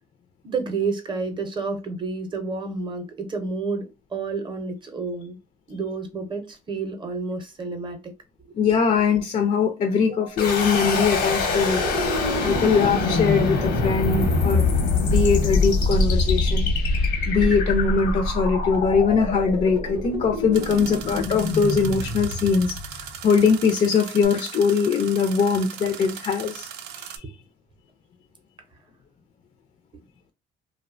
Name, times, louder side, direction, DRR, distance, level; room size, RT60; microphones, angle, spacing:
voice 1, 0.4-5.4 5.7-8.1 8.5-8.6 10.1-10.5 12.5-12.6 20.6-20.9 27.2-27.3, right 4 dB, 30° right, 6 dB, 0.6 m, -30 dB
voice 2, 8.5-11.8 12.1-14.6 15.0-16.7 16.9-22.8 23.2-26.7, left 5 dB, 45° left, 4 dB, 0.4 m, -21 dB
sound 1, 10.4-23.3, left 3 dB, 80° left, 0.8 m, -24 dB
sound 2, 20.5-27.2, right 9 dB, 80° right, 0.4 m, -38 dB
2.6 x 2.1 x 2.4 m, 0.27 s
cardioid pair, 110°, 17 cm